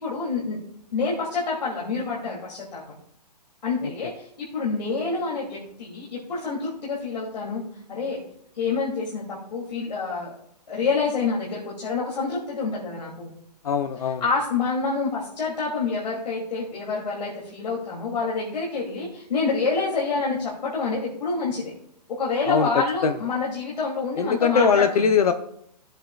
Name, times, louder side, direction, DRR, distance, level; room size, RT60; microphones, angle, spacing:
voice 1, 0.0-0.6 0.9-2.9 3.6-4.3 4.5-7.6 7.9-8.2 8.5-10.3 10.7-13.3 14.0-21.7 22.1-25.1, left 4 dB, 85° left, -4 dB, 2.7 m, -27 dB
voice 2, 13.6-14.2 22.5-22.7 23.0-23.1 24.2-25.3, left 6 dB, 60° left, 8 dB, 0.7 m, -21 dB
16.0 x 7.8 x 2.3 m, 0.72 s
hypercardioid pair, 170°, 21 cm